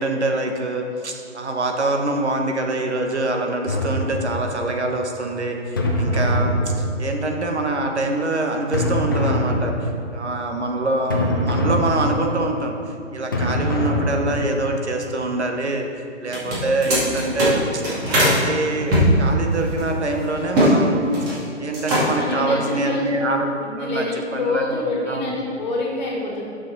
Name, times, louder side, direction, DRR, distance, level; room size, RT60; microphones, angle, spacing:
voice 1, 0.0-15.9 16.2-17.8 18.2-21.1 21.6-23.5 23.8-24.1 24.3-24.8 25.1-25.3, right 2 dB, 65° right, 3 dB, 1.2 m, -25 dB
sound 1, 3.7-4.7 5.8-7.4 8.7-10.1 11.1-12.5 13.3-14.7, equal, 20° left, 0.4 m, -23 dB
sound 2, 16.2-18.4 18.9-20.7 21.0-21.4 21.7-22.3, equal, 20° right, 2.1 m, -20 dB
voice 2, 22.2-23.0 23.6-26.4, left 2 dB, 40° left, -3 dB, 2.1 m, -26 dB
9.8 x 6.3 x 4.0 m, 2.4 s
figure-of-eight pair, 130°, 36 cm